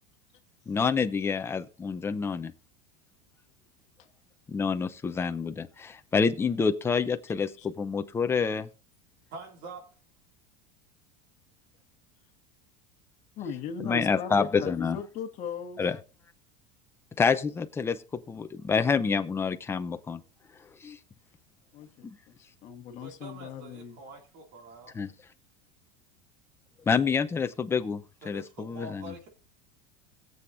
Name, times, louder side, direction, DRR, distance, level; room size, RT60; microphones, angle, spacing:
voice 1, 0.7-2.5 4.5-8.7 13.8-15.0 15.8-16.0 17.2-18.0 18.3-20.2 20.8-21.0 22.0-22.2 24.9-25.1 26.9-29.1, left 5 dB, 10° left, 9 dB, 0.6 m, -27 dB
voice 2, 9.3-9.8 23.0-25.0 28.2-29.3, right 2 dB, 50° right, 2 dB, 2.7 m, -45 dB
voice 3, 13.4-15.8 21.7-24.0, left 7 dB, 35° left, 4 dB, 1.6 m, -38 dB
21.5 x 7.9 x 2.7 m, 0.34 s
supercardioid pair, 150°, 20 cm